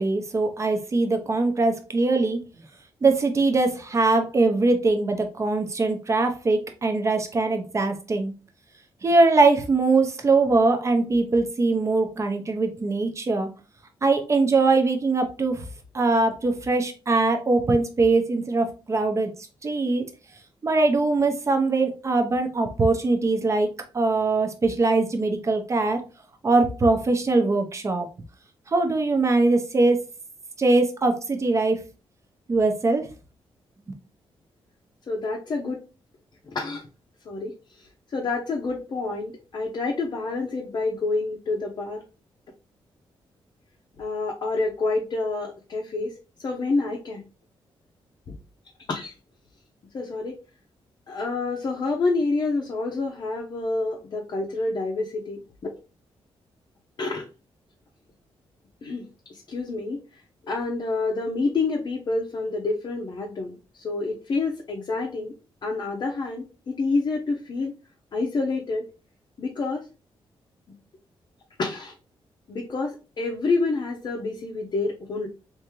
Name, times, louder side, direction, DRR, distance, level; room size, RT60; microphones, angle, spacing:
voice 1, 0.0-2.4 3.0-8.3 9.0-13.5 14.0-15.6 15.9-19.3 19.6-20.0 20.6-23.7 23.9-26.0 26.4-28.1 28.7-30.0 30.6-31.8 32.5-33.1, right 3 dB, 30° right, 0.6 m, -22 dB
voice 2, 35.1-35.8 36.5-36.9 37.3-42.0 44.0-46.1 46.4-47.2 48.3-48.4 48.9-49.1 49.9-50.4 51.1-55.7 57.0-57.3 58.8-59.0 59.3-60.0 60.4-65.3 65.6-67.8 68.1-68.8 69.4-69.9 71.6-71.9 72.5-75.3, left 3 dB, 45° left, 0.6 m, -28 dB
3.5 x 2.6 x 3.0 m
wide cardioid pair, 125°, 10 cm